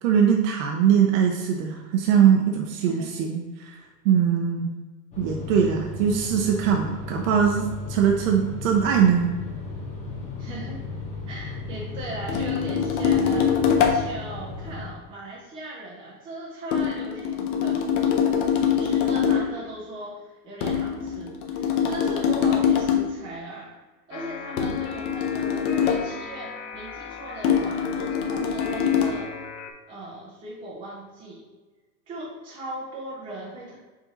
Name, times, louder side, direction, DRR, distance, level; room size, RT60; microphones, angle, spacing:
voice 1, 0.0-3.8 4.0-4.7 5.2-9.3, right 8 dB, 55° right, 1 dB, 0.7 m, -21 dB
voice 2, 2.8-3.1 10.4-10.8 11.3-17.8 18.8-23.7 24.1-29.3 29.9-31.4 32.1-33.7, right 1 dB, 10° right, -5 dB, 0.4 m, -38 dB
sound 1, 5.1-14.9, left 3 dB, 15° left, 1.1 m, -35 dB
sound 2, 12.3-14.1 16.7-19.6 20.6-23.2 24.6-26.1 27.4-29.2, left 7 dB, 35° left, 0.6 m, -23 dB
sound 3, 24.1-29.7, left 5 dB, 65° left, 0.8 m, -39 dB
5.0 x 2.6 x 4.0 m, 1.3 s
hypercardioid pair, 120°, 49 cm